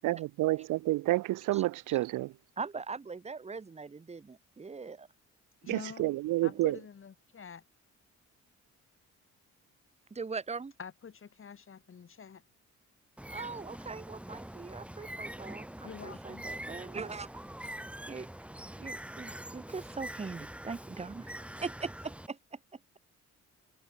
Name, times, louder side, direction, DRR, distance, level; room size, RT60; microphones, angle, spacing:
voice 1, 0.0-2.3 5.7-6.8, right 17 dB, 85° right, 1.0 m, -29 dB
voice 2, 1.5-2.0 2.6-5.1 6.4-6.7 10.1-10.7 13.3-17.3 18.1-18.3 18.8-22.6, right 4 dB, 20° right, 1.3 m, -41 dB
voice 3, 5.6-7.6 10.8-12.4 15.8-16.4, left 6 dB, 45° left, 3.4 m, -47 dB
Bird, 13.2-22.3, right 1 dB, 5° right, 1.9 m, -44 dB
cardioid pair, 90°, 30 cm